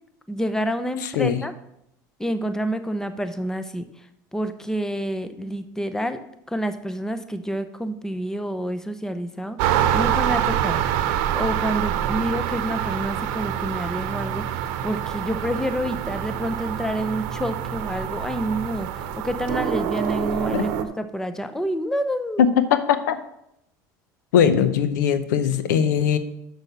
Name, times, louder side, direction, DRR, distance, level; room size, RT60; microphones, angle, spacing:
voice 1, 0.3-1.5 2.2-6.2 6.5-22.4, equal, 5° left, 10 dB, 0.8 m, -28 dB
voice 2, 1.0-1.4 20.5-20.6 22.4-23.2 24.3-26.2, left 8 dB, 90° left, 11 dB, 0.7 m, -20 dB
sound 1, 9.6-20.8, right 10 dB, 70° right, 0.9 m, -26 dB
6.6 x 6.2 x 6.7 m, 0.79 s
supercardioid pair, 100°, 10 cm